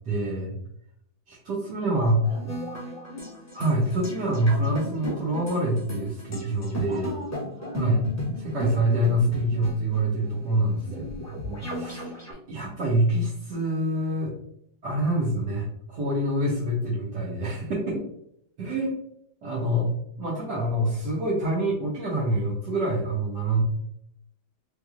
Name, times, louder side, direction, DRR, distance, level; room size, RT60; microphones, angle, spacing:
voice 1, 0.0-0.6 1.3-2.3 3.5-7.1 7.8-8.0 8.4-14.3 14.8-18.0 18.6-18.9 19.4-19.9 20.2-23.6, right 1 dB, 65° right, -6 dB, 1.3 m, -26 dB
voice 2, 1.9-2.4 3.1-3.4 6.9-8.0 10.9-11.4 17.8-17.9, left 2 dB, 25° right, -6 dB, 1.6 m, -42 dB
sound 1, 2.2-12.3, left 1 dB, 20° left, 0.4 m, -36 dB
3.3 x 3.2 x 2.3 m, 0.73 s
omnidirectional pair, 2.1 m